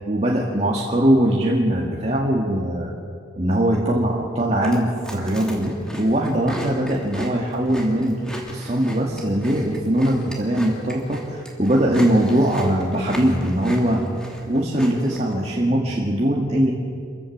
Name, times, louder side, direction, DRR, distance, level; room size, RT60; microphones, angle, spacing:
voice 1, 0.0-2.9 3.4-8.2 8.5-14.0 14.5-16.7, right 1 dB, 35° right, -3 dB, 2.0 m, -21 dB
Chewing mastication, 4.5-15.3, equal, 5° left, 2.9 m, -36 dB
27.5 x 15.5 x 7.4 m, 2.4 s
head